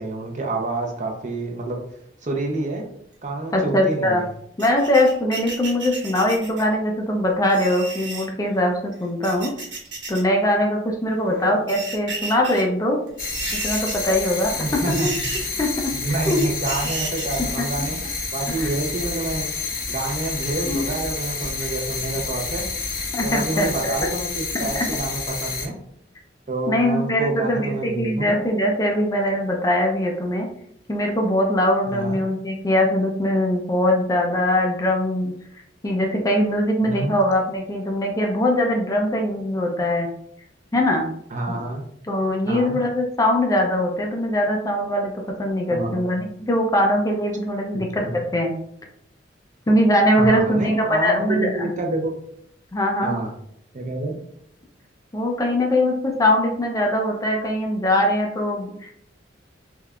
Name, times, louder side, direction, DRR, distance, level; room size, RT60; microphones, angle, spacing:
voice 1, 0.0-1.8 2.2-2.8 3.2-4.3 11.3-11.5 14.5-15.1 15.9-18.0 18.3-19.5 19.9-22.6 23.2-25.8 26.5-28.4 31.9-32.2 36.8-37.2 41.3-41.9 42.4-42.8 45.7-46.0 47.7-48.2 50.2-52.1 53.0-53.3 53.7-54.2, right 2 dB, 40° right, 1 dB, 0.6 m, -28 dB
voice 2, 3.5-4.2 4.6-9.5 10.1-13.0 13.6-15.0 15.6-15.9 16.3-16.4 17.8-17.9 18.6-18.7 20.6-20.8 23.1-23.9 24.5-24.8 26.7-30.5 30.9-35.3 35.8-40.1 40.7-41.1 41.5-41.6 42.1-48.5 49.7-51.7 52.7-53.2 55.1-58.9, left 1 dB, 20° left, 1 dB, 0.4 m, -21 dB
sound 1, 4.6-6.7 7.4-8.3 9.0-10.2 10.5-10.6 11.4-12.6 13.1-14.2 14.5-14.6 14.9-15.6 16.2-17.4 18.5-19.3 20.0-20.7 21.0-21.1 21.5-21.6, right 3 dB, 70° right, 1.2 m, -33 dB
sound 2, 13.2-25.7, left 4 dB, 50° left, 0.9 m, -29 dB
3.5 x 3.2 x 2.3 m, 0.70 s
head